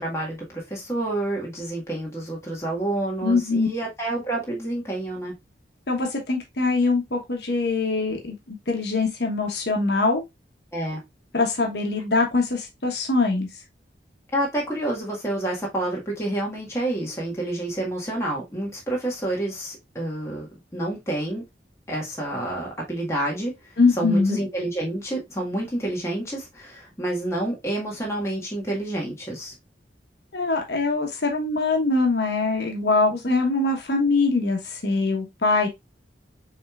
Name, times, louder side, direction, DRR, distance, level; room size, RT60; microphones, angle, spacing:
voice 1, 0.0-5.3 10.7-11.0 14.3-21.4 21.9-29.5, right 1 dB, 15° left, 1.7 m, -29 dB
voice 2, 3.2-3.7 5.9-10.2 11.3-13.5 23.8-24.4 30.3-35.7, left 3 dB, 70° left, 1.1 m, -23 dB
6.4 x 3.3 x 2.4 m
head